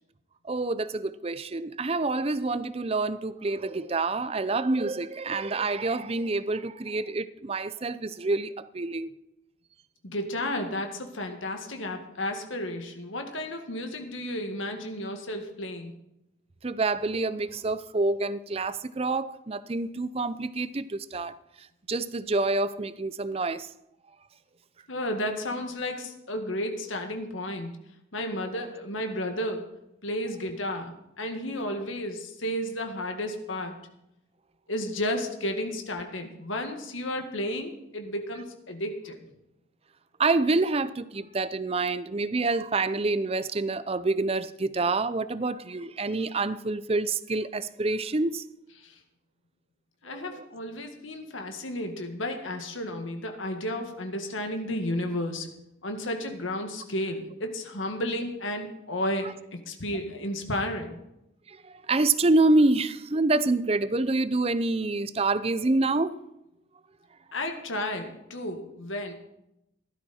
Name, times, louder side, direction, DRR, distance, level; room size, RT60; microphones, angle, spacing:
voice 1, 0.4-9.1 16.6-23.7 40.2-48.4 50.1-50.2 61.5-66.2, right 3 dB, 30° right, 0.5 m, -27 dB
voice 2, 10.0-15.9 24.9-27.7 28.1-29.7 30.0-33.8 34.7-39.2 48.8-49.0 50.0-55.5 55.8-59.3 59.7-61.0 67.3-69.1, left 1 dB, 85° left, 1.9 m, -32 dB
16.0 x 12.5 x 4.3 m
head